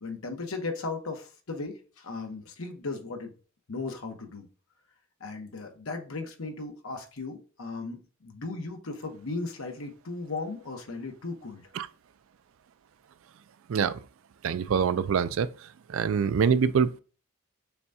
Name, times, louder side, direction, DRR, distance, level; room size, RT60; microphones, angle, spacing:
voice 1, 0.0-3.3 3.7-4.5 5.2-11.6, left 3 dB, 75° left, 1.0 m, -36 dB
voice 2, 13.7-14.0 14.4-15.5 15.9-17.0, right 6 dB, 65° right, 0.4 m, -25 dB
6.8 x 2.3 x 2.7 m
head